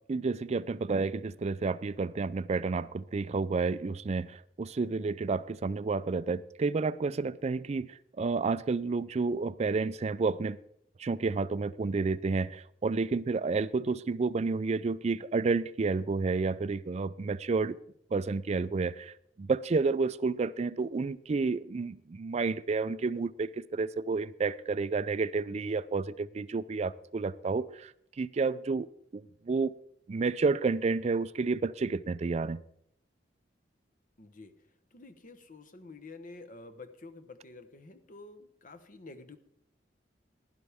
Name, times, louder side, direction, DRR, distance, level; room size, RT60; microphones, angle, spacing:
voice 1, 0.1-10.6 11.0-17.8 18.1-27.9 28.2-28.9 29.1-29.7 30.1-32.6, right 4 dB, 40° right, 0.4 m, -30 dB
voice 2, 34.2-39.4, left 3 dB, 50° left, 0.9 m, -49 dB
16.0 x 11.5 x 3.5 m
head